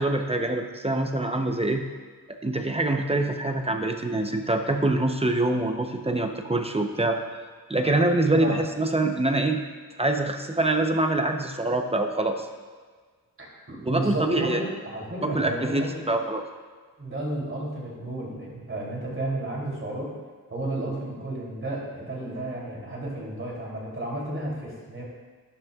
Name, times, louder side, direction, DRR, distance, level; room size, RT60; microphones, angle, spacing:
voice 1, 0.0-1.8 2.4-7.2 7.7-9.6 10.0-12.5 13.8-14.6 15.2-16.4, right 2 dB, 15° right, 4 dB, 0.7 m, -25 dB
voice 2, 13.4-16.2 17.0-20.1 20.5-25.1, right 1 dB, 35° right, -4 dB, 3.1 m, -32 dB
12.0 x 10.5 x 2.4 m, 1.5 s
wide cardioid pair, 120°, 36 cm